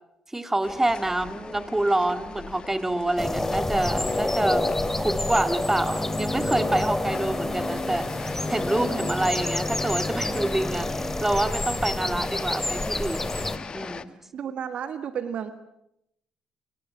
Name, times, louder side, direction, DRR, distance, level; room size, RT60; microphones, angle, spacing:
voice 1, 0.3-4.7 5.0-13.3 13.7-14.1, right 1 dB, 15° right, 9 dB, 2.8 m, -27 dB
sound 1, 0.6-14.0, left 5 dB, 45° left, 1.4 m, -40 dB
sound 2, 3.2-13.6, left 2 dB, 15° left, 2.7 m, -28 dB
voice 2, 14.3-15.5, right 8 dB, 60° right, 11 dB, 1.5 m, -32 dB
29.5 x 24.0 x 7.3 m, 0.80 s
hypercardioid pair, 45°, 2 cm